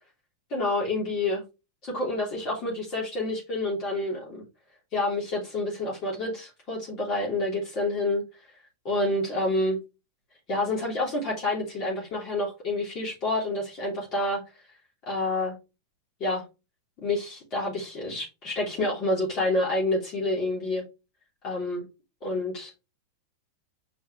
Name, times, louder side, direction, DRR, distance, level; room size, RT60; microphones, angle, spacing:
voice 1, 0.5-1.4 1.8-4.4 4.9-8.2 8.8-9.8 10.5-14.4 15.1-15.5 16.2-16.4 17.0-20.8 21.4-21.9 22.2-22.9, left 2 dB, 45° left, -3 dB, 3.2 m, -28 dB
6.1 x 5.5 x 3.2 m, 0.27 s
hypercardioid pair, 95°, 0 cm